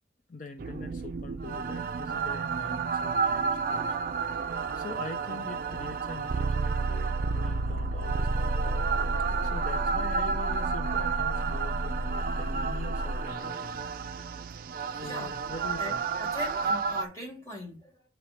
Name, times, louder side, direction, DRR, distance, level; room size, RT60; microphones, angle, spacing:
voice 1, 0.3-4.0 4.3-9.1 9.4-13.9 14.9-16.0, left 3 dB, 45° left, 0.5 m, -43 dB
sound 1, 0.6-17.1, right 4 dB, 50° right, 0.4 m, -30 dB
voice 2, 15.0-15.3 15.8-18.0, equal, 15° left, 2.8 m, -40 dB
8.1 x 2.9 x 4.3 m
head